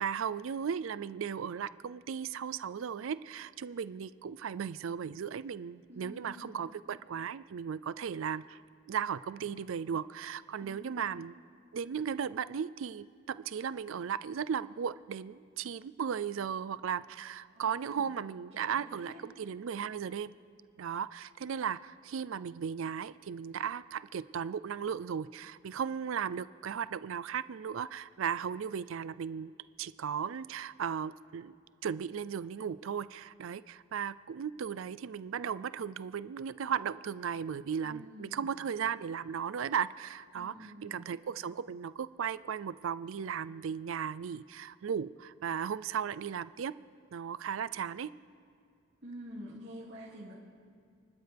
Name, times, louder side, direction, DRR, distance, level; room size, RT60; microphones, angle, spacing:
voice 1, 0.0-8.6 8.9-11.3 11.7-20.3 20.8-29.5 29.8-31.5 31.8-46.7 47.1-48.1, right 7 dB, 75° right, 17 dB, 0.4 m, -36 dB
voice 2, 5.9-6.6 10.6-11.0 17.5-18.1 18.5-19.2 37.8-38.5 40.3-41.1 49.0-50.3, equal, 55° right, -8 dB, 2.5 m, -48 dB
29.5 x 12.0 x 3.4 m, 2.3 s
head